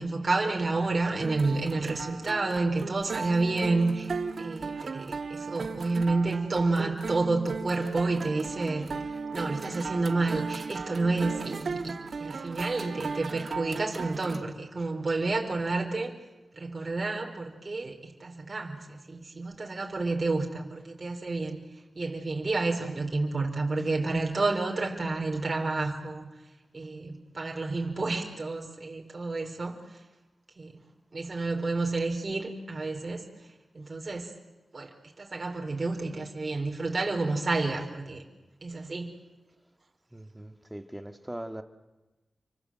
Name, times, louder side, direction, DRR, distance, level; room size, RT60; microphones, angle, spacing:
voice 1, 0.0-4.1 4.4-8.9 9.3-11.9 12.2-16.1 16.6-21.6 22.0-26.2 26.7-29.8 30.6-30.7 31.1-33.2 33.7-34.3 34.7-34.9 35.2-38.2 38.6-39.1, right 3 dB, 50° right, 1 dB, 4.6 m, -30 dB
sound 1, 1.2-14.4, right 4 dB, 75° right, 1.5 m, -36 dB
voice 2, 40.1-41.6, right 1 dB, 15° right, 7 dB, 2.3 m, -40 dB
30.0 x 24.5 x 7.7 m, 1.1 s
cardioid pair, 55°, 0 cm